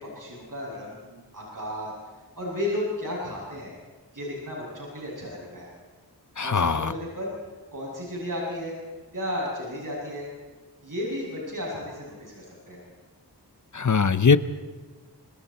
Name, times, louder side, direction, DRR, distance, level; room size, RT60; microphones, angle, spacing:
voice 1, 0.0-1.9 2.4-3.7 4.1-5.7 6.4-7.3 7.7-8.7 9.1-10.3 10.8-12.8, left 1 dB, 50° right, -4 dB, 7.3 m, -33 dB
voice 2, 6.4-6.9 13.7-14.4, left 5 dB, 45° left, 14 dB, 0.8 m, -20 dB
26.0 x 25.5 x 4.3 m, 1.3 s
wide cardioid pair, 65°, 41 cm